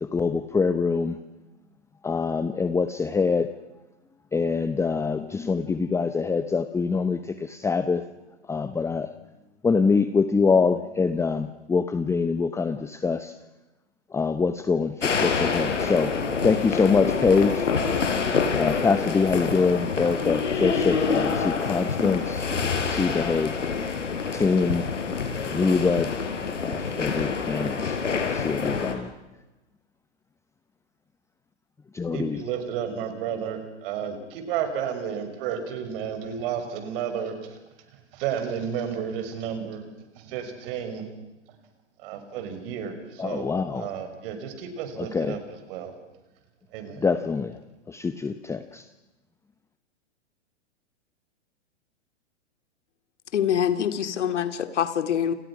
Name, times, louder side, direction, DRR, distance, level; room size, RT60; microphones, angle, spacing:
voice 1, 0.0-1.2 2.0-3.5 4.3-8.1 8.5-9.1 9.6-13.3 14.1-16.1 16.4-17.7 18.5-22.5 22.8-23.5 24.3-24.9 25.4-26.1 26.6-28.0 28.3-29.1 31.9-32.4 43.2-43.9 45.0-45.4 47.0-47.6 47.9-48.8, left 4 dB, 10° left, 10 dB, 0.9 m, -24 dB
sound 1, 15.0-28.9, left 5 dB, 90° left, 4.8 m, -27 dB
voice 2, 32.1-37.6 38.1-39.9 40.1-41.1 42.0-45.9 46.7-47.1, right 8 dB, 50° right, 7 dB, 6.1 m, -32 dB
voice 3, 53.3-55.3, left 9 dB, 70° left, 9 dB, 2.8 m, -25 dB
29.5 x 28.5 x 6.2 m, 1.0 s
hypercardioid pair, 125°, 36 cm